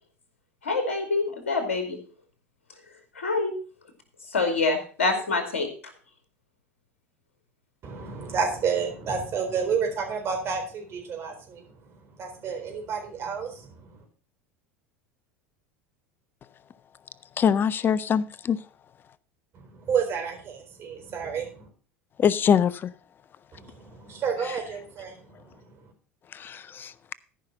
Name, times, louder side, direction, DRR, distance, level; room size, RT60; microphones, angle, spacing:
voice 1, 0.6-2.0 3.2-3.5 4.3-5.7, left 3 dB, 70° left, 6 dB, 2.5 m, -26 dB
voice 2, 7.8-11.6 12.2-13.7 19.7-21.7 23.5-25.5, right 6 dB, 35° right, 2 dB, 4.1 m, -30 dB
voice 3, 17.4-18.6 22.2-22.9 26.3-26.9, left 7 dB, 30° left, 20 dB, 0.5 m, -23 dB
13.5 x 5.7 x 5.5 m, 0.40 s
figure-of-eight pair, 75°, 7 cm